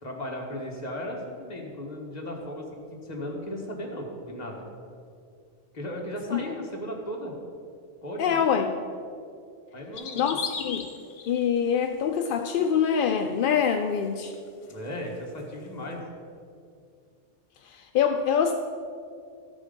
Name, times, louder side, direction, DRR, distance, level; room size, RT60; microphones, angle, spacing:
voice 1, 0.0-4.6 5.7-7.3 8.0-8.7 9.7-10.4 14.7-16.0, equal, 35° left, -1 dB, 1.6 m, -36 dB
voice 2, 8.2-8.7 10.2-10.9 11.3-14.3 17.7-18.5, left 7 dB, 60° left, 5 dB, 0.6 m, -25 dB
sound 1, 9.9-11.7 12.1-12.7 13.0-13.1 14.0-14.1 14.3-14.4 15.4-15.5, left 6 dB, 85° left, 1.2 m, -36 dB
13.0 x 6.2 x 5.2 m, 2.4 s
omnidirectional pair, 1.2 m